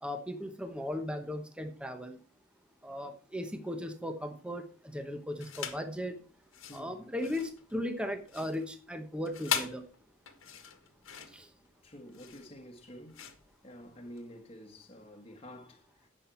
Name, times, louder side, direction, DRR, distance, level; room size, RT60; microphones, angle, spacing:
voice 1, 0.0-2.2 2.8-4.6 4.9-6.2 6.7-9.8 11.3-11.5, left 1 dB, 5° right, 1.0 m, -37 dB
sound 1, 5.4-5.9 6.4-14.3, left 7 dB, 70° left, 1.7 m, -40 dB
voice 2, 6.7-7.0 11.3-11.4 11.8-13.3 13.6-16.1, equal, 25° left, 1.4 m, -49 dB
11.0 x 7.6 x 4.5 m
head